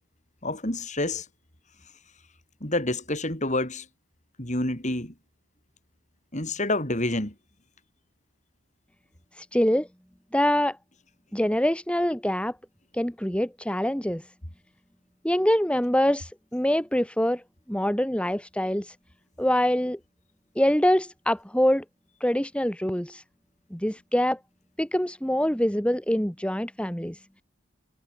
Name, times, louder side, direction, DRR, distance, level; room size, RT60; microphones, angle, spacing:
voice 1, 0.4-1.3 2.6-3.8 4.4-5.1 6.3-7.3, left 2 dB, 35° left, 5.2 m, -28 dB
voice 2, 9.4-9.9 10.3-10.8 11.3-12.6 12.9-14.2 15.2-17.4 17.7-19.0 19.4-20.0 20.6-21.8 22.2-23.2 23.7-24.4 24.8-27.2, equal, 5° left, 1.8 m, -24 dB
head